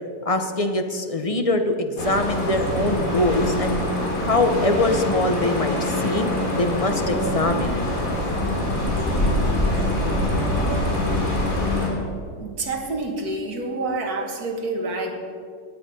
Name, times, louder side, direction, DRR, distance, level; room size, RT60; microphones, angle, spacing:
voice 1, 0.2-3.8 4.2-7.8, left 2 dB, 30° left, 6 dB, 0.7 m, -23 dB
sound 1, 2.0-11.9, left 1 dB, 55° left, 3.1 m, -24 dB
voice 2, 12.4-15.1, right 2 dB, 65° right, 2 dB, 2.1 m, -28 dB
18.0 x 9.5 x 5.4 m, 2.2 s
omnidirectional pair, 1.8 m